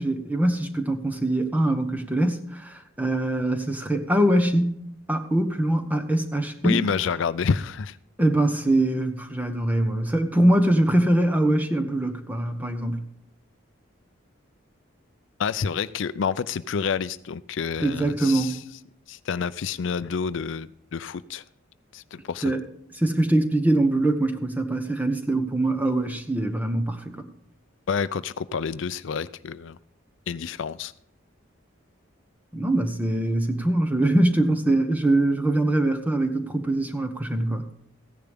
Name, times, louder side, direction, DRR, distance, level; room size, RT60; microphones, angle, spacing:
voice 1, 0.0-4.8 5.1-6.9 8.2-13.0 17.8-18.6 22.4-22.6 22.9-27.3 32.5-37.7, right 1 dB, 10° right, 1.0 m, -23 dB
voice 2, 6.6-8.0 15.4-18.6 19.1-21.4 21.9-22.5 27.9-29.8 30.3-30.9, left 6 dB, 65° left, 0.4 m, -28 dB
15.0 x 10.5 x 3.6 m
head